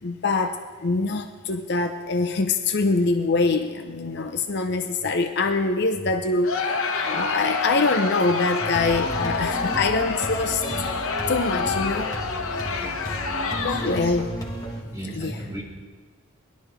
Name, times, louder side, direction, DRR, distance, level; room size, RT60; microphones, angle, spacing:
voice 1, 0.0-6.7 7.0-10.6 11.3-12.2 13.6-14.3 15.1-15.4, left 3 dB, 50° left, 6 dB, 0.6 m, -24 dB
Crowd, 6.4-14.2, left 4 dB, 75° left, 0.9 m, -28 dB
sound 1, 8.6-14.8, equal, 15° left, 1.5 m, -33 dB
voice 2, 13.7-14.2 14.8-15.6, right 1 dB, 15° right, -6 dB, 3.4 m, -35 dB
19.0 x 11.5 x 3.4 m, 1.4 s
head